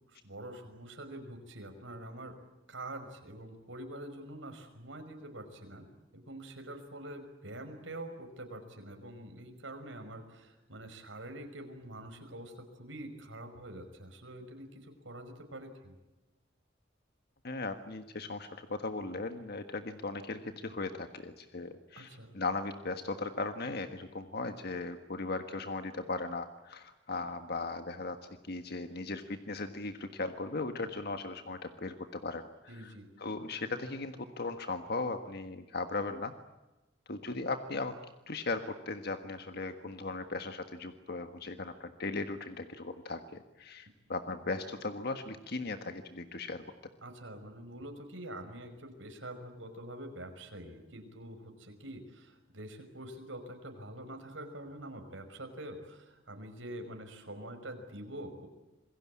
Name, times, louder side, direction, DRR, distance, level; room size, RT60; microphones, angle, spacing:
voice 1, 0.2-2.4 2.7-15.9 21.9-22.4 32.7-33.1 47.0-58.5, right 1 dB, 80° right, 6 dB, 5.6 m, -45 dB
voice 2, 17.4-28.2 28.4-36.3 37.1-37.9 38.3-46.6, left 3 dB, 55° left, 7 dB, 1.5 m, -38 dB
27.5 x 21.5 x 8.7 m, 1.0 s
head